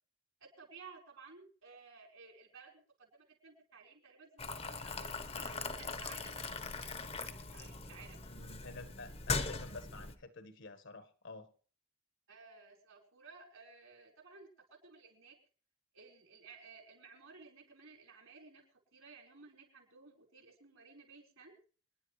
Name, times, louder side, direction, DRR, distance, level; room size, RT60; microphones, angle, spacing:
voice 1, 0.4-8.2 12.3-15.3 15.9-18.6 18.9-21.6, right 4 dB, 70° right, 1 dB, 4.8 m, -56 dB
Boiling, 4.4-10.2, left 4 dB, 30° left, 1.0 m, -40 dB
voice 2, 8.3-11.5, left 3 dB, 60° left, 11 dB, 1.5 m, -49 dB
27.0 x 10.5 x 3.3 m, 0.41 s
head